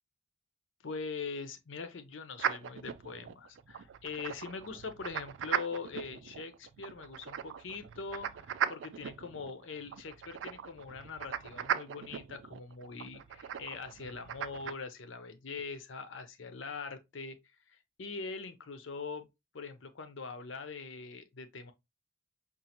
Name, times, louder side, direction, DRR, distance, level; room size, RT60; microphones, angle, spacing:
voice 1, 0.8-17.4 17.7-19.3 19.5-21.7, left 4 dB, 90° left, 0.7 m, -42 dB
sound 1, 2.4-14.7, right 8 dB, 80° right, 0.3 m, -39 dB
5.2 x 2.4 x 2.8 m
head